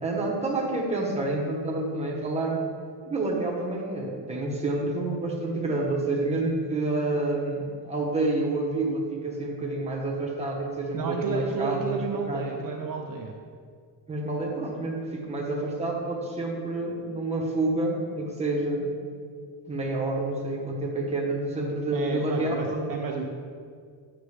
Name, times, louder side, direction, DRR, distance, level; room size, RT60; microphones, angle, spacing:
voice 1, 0.0-2.6 3.0-12.7 14.1-18.9 19.7-22.8, right 2 dB, 15° right, -2 dB, 0.9 m, -28 dB
voice 2, 10.9-13.4 21.9-23.2, right 5 dB, 50° right, 1 dB, 0.6 m, -31 dB
8.6 x 5.9 x 3.3 m, 2.1 s
cardioid pair, 180°, 44 cm